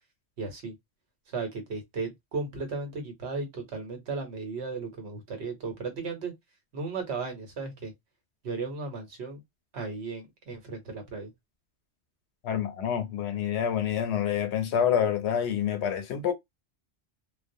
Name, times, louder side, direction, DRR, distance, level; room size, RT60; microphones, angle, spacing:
voice 1, 0.4-0.7 1.3-6.3 6.7-7.9 8.4-9.4 9.7-11.3, right 4 dB, 75° right, 1.1 m, -35 dB
voice 2, 12.4-16.3, left 8 dB, 85° left, 0.9 m, -27 dB
2.4 x 2.0 x 2.6 m
omnidirectional pair, 1.1 m